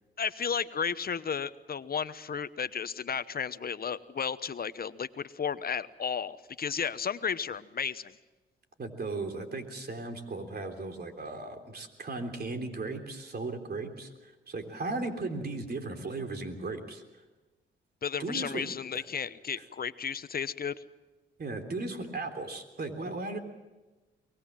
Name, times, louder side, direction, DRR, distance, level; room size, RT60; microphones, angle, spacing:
voice 1, 0.2-8.2 18.0-20.8, left 6 dB, 45° left, 14 dB, 1.0 m, -33 dB
voice 2, 8.8-17.0 18.2-18.6 18.9-19.0 21.4-23.4, right 3 dB, 50° right, 6 dB, 3.5 m, -36 dB
23.5 x 19.5 x 7.5 m, 1.2 s
supercardioid pair, 55°, 21 cm